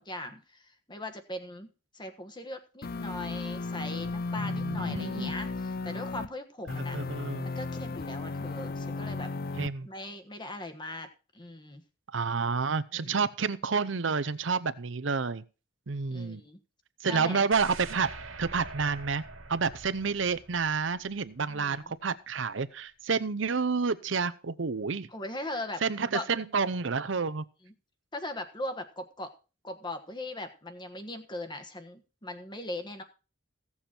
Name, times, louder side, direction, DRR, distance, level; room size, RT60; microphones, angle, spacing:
voice 1, 0.0-1.7 1.9-7.0 7.4-9.3 9.8-11.1 11.3-11.8 12.9-13.3 16.1-16.6 17.1-17.4 21.5-21.9 25.1-26.3 27.6-27.7 28.1-29.3 29.6-33.0, left 1 dB, 25° left, 8 dB, 1.3 m, -39 dB
sound 1, 2.8-6.3 6.7-9.7, left 3 dB, 50° left, 0.5 m, -35 dB
voice 2, 4.4-5.3 6.7-7.5 9.6-9.9 12.1-15.4 15.9-16.4 17.0-18.1 18.4-19.2 19.5-25.1 25.8-27.4, right 5 dB, 65° right, 15 dB, 0.7 m, -29 dB
sound 2, 17.5-21.5 21.8-21.9, right 3 dB, 85° right, 2.0 m, -44 dB
16.0 x 7.2 x 4.4 m, 0.34 s
head